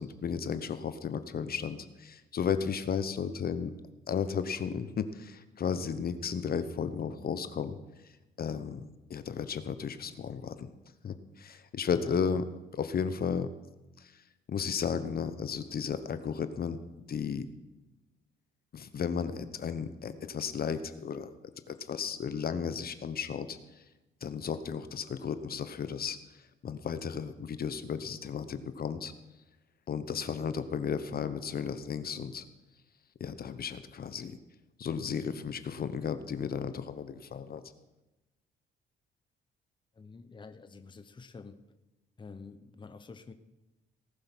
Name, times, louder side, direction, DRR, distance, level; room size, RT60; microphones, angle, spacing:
voice 1, 0.0-3.7 4.1-7.8 8.4-10.7 11.0-12.4 12.8-13.5 14.0-14.2 14.5-16.8 17.1-17.5 18.7-21.3 21.7-23.8 24.2-26.2 26.6-29.1 29.9-32.5 33.2-34.4 34.8-37.6, left 6 dB, 50° left, 11 dB, 1.0 m, -34 dB
voice 2, 40.0-41.6 42.2-43.3, left 4 dB, 25° left, 10 dB, 0.9 m, -47 dB
18.5 x 7.7 x 6.1 m, 1.0 s
cardioid pair, 90°, 20 cm